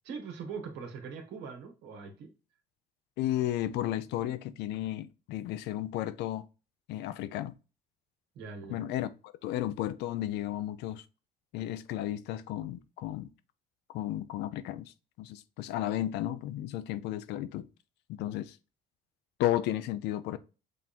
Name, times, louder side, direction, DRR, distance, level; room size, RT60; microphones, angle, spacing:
voice 1, 0.0-2.3 8.4-8.8, right 5 dB, 90° right, 2.0 m, -41 dB
voice 2, 3.2-6.5 6.9-7.5 8.7-11.0 11.5-13.3 13.9-14.9 15.2-17.7 18.1-18.6 19.4-20.4, left 13 dB, 85° left, 0.6 m, -33 dB
6.4 x 3.6 x 4.4 m
cardioid pair, 110°, 17 cm